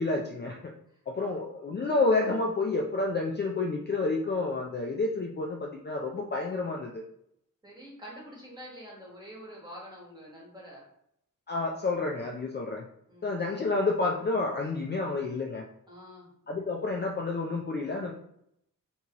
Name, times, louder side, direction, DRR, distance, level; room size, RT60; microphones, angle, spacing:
voice 1, 0.0-0.7 1.1-6.9 11.5-12.8 13.2-15.6 16.5-18.1, left 3 dB, 35° left, -1 dB, 0.4 m, -29 dB
voice 2, 0.9-1.3 7.6-10.9 13.1-13.4 15.9-16.3, equal, 15° right, -4 dB, 1.2 m, -47 dB
3.5 x 2.8 x 2.9 m, 0.73 s
wide cardioid pair, 130°, 33 cm